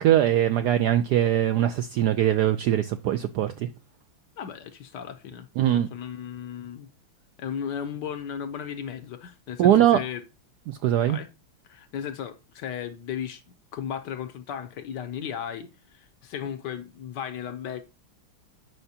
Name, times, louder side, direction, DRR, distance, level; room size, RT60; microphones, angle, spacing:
voice 1, 0.0-3.7 5.6-5.9 9.6-10.0 10.7-11.2, right 11 dB, 80° right, 0.9 m, -21 dB
voice 2, 4.4-5.5 5.7-6.9 7.4-10.2 11.1-11.3 11.6-13.4 13.7-17.8, left 8 dB, 70° left, 1.1 m, -35 dB
9.2 x 5.6 x 2.8 m
omnidirectional pair, 2.2 m